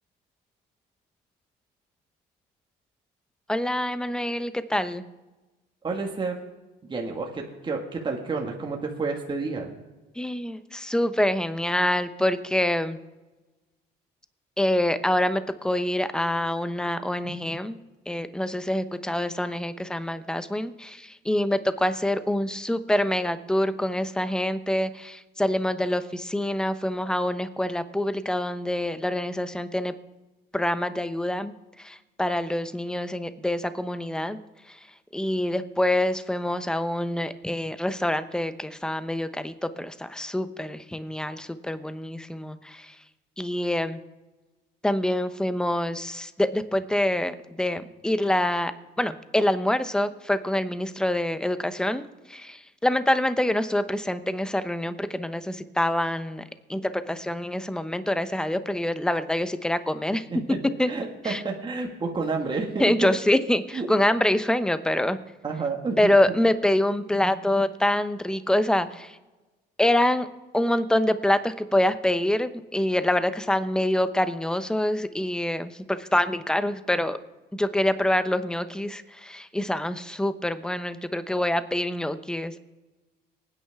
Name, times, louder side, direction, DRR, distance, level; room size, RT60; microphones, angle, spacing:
voice 1, 3.5-5.0 10.2-13.0 14.6-17.8 18.1-29.9 30.5-34.4 34.7-34.8 35.1-43.0 43.4-44.0 44.8-48.7 49.0-56.4 56.7-60.3 60.8-60.9 61.2-61.4 62.8-65.2 66.0-69.2 69.8-70.3 70.5-77.2 77.5-82.6, left 1 dB, 5° left, 12 dB, 0.8 m, -26 dB
voice 2, 5.8-6.4 6.8-9.7 60.3-60.6 60.9-63.1 63.7-63.9 65.4-66.1, right 4 dB, 25° right, 0 dB, 1.9 m, -30 dB
24.5 x 9.7 x 3.6 m, 1.2 s
cardioid pair, 105°, 18 cm